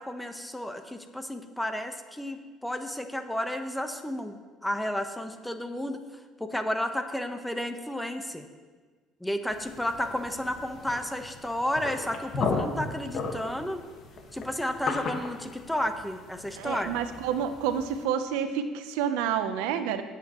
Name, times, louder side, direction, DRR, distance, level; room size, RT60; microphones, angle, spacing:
voice 1, 0.0-4.3 4.6-6.0 6.4-8.4 9.2-13.8 14.3-17.0, left 1 dB, 5° left, 7 dB, 1.1 m, -32 dB
sound 1, 9.5-18.0, left 4 dB, 55° left, 1.6 m, -36 dB
voice 2, 16.5-20.0, right 8 dB, 90° right, 9 dB, 0.8 m, -29 dB
19.0 x 8.5 x 3.1 m, 1.4 s
supercardioid pair, 100°, 0 cm